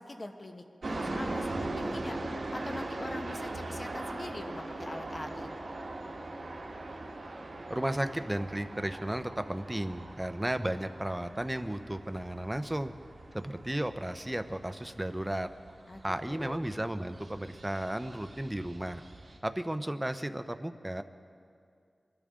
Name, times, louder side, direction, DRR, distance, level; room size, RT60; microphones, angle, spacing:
voice 1, 0.0-5.5 15.9-16.6, left 2 dB, 40° left, 6 dB, 1.1 m, -43 dB
sound 1, 0.8-19.4, right 2 dB, 65° right, 1.7 m, -41 dB
voice 2, 7.7-12.9 13.3-15.5 16.0-19.0 19.4-21.0, right 1 dB, 15° right, 9 dB, 0.7 m, -34 dB
23.0 x 12.0 x 3.8 m, 2.3 s
wide cardioid pair, 55°, 0 cm